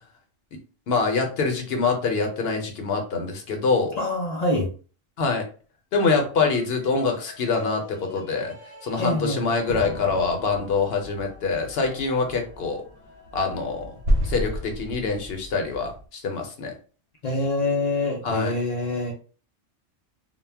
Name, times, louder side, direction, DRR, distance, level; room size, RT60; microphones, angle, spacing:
voice 1, 0.9-4.0 5.2-5.4 5.9-8.5 8.8-12.8 13.3-13.9 14.2-16.7 18.2-18.5, left 4 dB, 60° left, 3 dB, 0.7 m, -25 dB
voice 2, 4.0-4.7 9.0-9.5 17.2-19.1, left 2 dB, 85° left, 0 dB, 0.3 m, -25 dB
sound 1, 6.4-14.9, left 2 dB, 15° right, 0.5 m, -44 dB
sound 2, 9.7-16.0, equal, 65° right, 0.7 m, -31 dB
2.2 x 2.1 x 3.2 m, 0.37 s
omnidirectional pair, 1.3 m